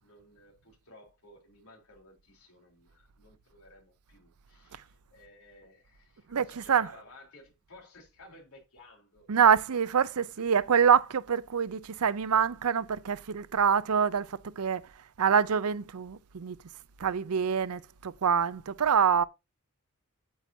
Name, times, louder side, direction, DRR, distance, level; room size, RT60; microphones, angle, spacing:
voice 1, 0.0-9.3 10.0-10.2, left 2 dB, 75° left, 3.6 m, -56 dB
voice 2, 6.3-6.9 9.3-14.8 15.2-16.6 17.0-19.2, right 7 dB, 80° right, 0.6 m, -25 dB
8.8 x 8.2 x 2.7 m
head